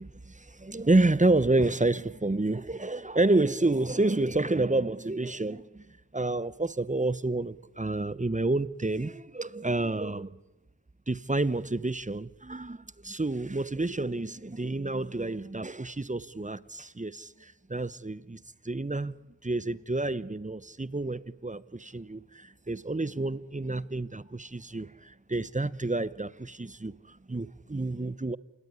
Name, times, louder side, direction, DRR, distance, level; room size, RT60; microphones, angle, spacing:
voice 1, 0.0-5.8 6.1-10.3 11.1-18.4 18.6-19.1 19.4-28.4, right 2 dB, 15° right, 0.9 m, -29 dB
28.0 x 18.5 x 9.8 m
cardioid pair, 45°, 46 cm